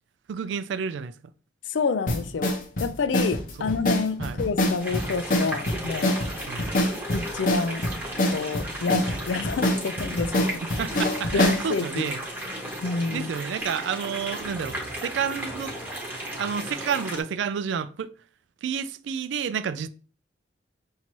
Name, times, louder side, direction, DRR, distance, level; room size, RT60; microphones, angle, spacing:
voice 1, 0.3-1.2 3.6-3.7 4.2-4.4 6.5-6.8 10.6-12.2 13.1-15.8 16.4-18.1 18.6-19.9, right 7 dB, 80° right, 0.3 m, -30 dB
voice 2, 1.7-2.5 2.8-6.1 7.1-7.8 8.3-10.6 11.3-12.1 12.8-13.3, left 4 dB, 85° left, 0.4 m, -28 dB
sound 1, 2.1-11.7, left 1 dB, 45° left, 0.7 m, -25 dB
sound 2, 4.8-17.2, right 1 dB, 10° right, 0.9 m, -35 dB
5.8 x 2.8 x 2.9 m
head